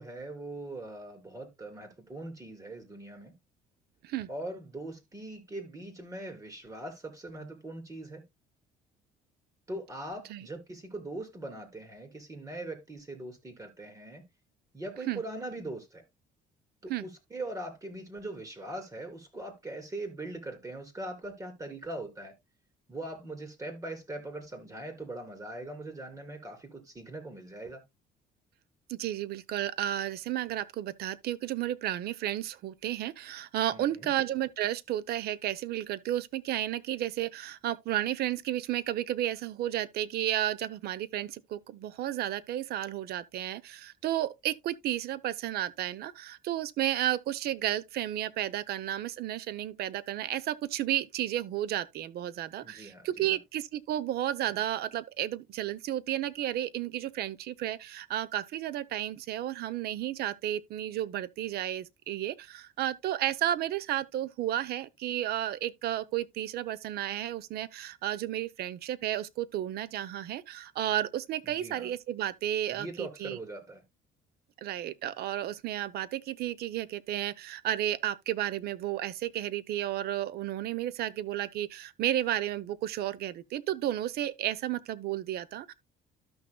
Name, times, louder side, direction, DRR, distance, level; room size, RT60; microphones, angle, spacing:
voice 1, 0.0-3.3 4.3-8.2 9.7-14.2 14.7-16.0 16.8-22.3 22.9-27.8 33.7-34.1 52.6-53.4 54.5-54.6 71.4-71.9 72.7-73.8, right 2 dB, 20° right, 3.1 m, -41 dB
voice 2, 28.9-73.4 74.6-85.7, right 12 dB, 70° right, 0.7 m, -32 dB
13.5 x 6.2 x 2.2 m
cardioid pair, 110°, 17 cm